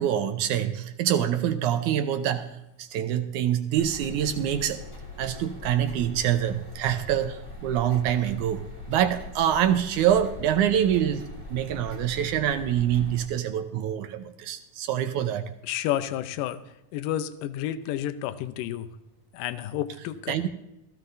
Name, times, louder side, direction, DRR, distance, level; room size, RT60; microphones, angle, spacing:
voice 1, 0.0-2.5 2.8-4.8 5.2-8.6 8.9-11.2 11.5-15.4 20.3-20.5, right 10 dB, 75° right, 8 dB, 1.9 m, -25 dB
sound 1, 3.8-13.3, left 1 dB, 25° left, 0.6 m, -41 dB
voice 2, 15.6-16.6 16.9-18.9 19.3-20.5, left 12 dB, 75° left, 12 dB, 2.2 m, -30 dB
16.5 x 14.5 x 2.6 m, 0.88 s
omnidirectional pair, 4.2 m